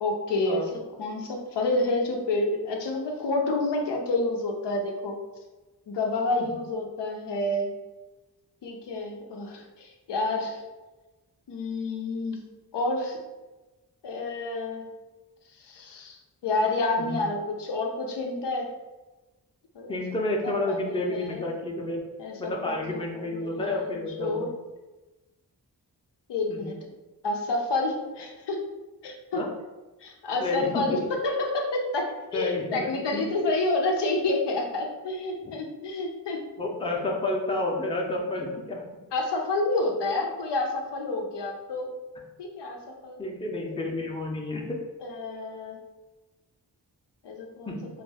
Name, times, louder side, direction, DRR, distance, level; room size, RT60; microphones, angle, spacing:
voice 1, 0.0-5.2 5.9-7.7 8.6-10.6 11.5-12.4 12.7-13.2 14.0-14.8 15.6-18.7 19.7-20.0 20.7-21.5 22.2-24.5 26.3-26.8 27.2-28.6 29.0-29.4 30.0-36.4 39.1-41.9 42.4-43.2 45.0-45.8 47.2-47.8, left 2 dB, 85° left, 2 dB, 0.6 m, -29 dB
voice 2, 19.9-22.0 22.4-24.5 26.5-26.7 29.3-29.5 30.4-31.0 32.3-33.5 35.4-35.5 36.6-38.8 43.2-44.8 47.7-47.9, left 2 dB, 15° left, 0 dB, 0.5 m, -30 dB
2.4 x 2.1 x 3.4 m, 1.1 s
cardioid pair, 45°, 41 cm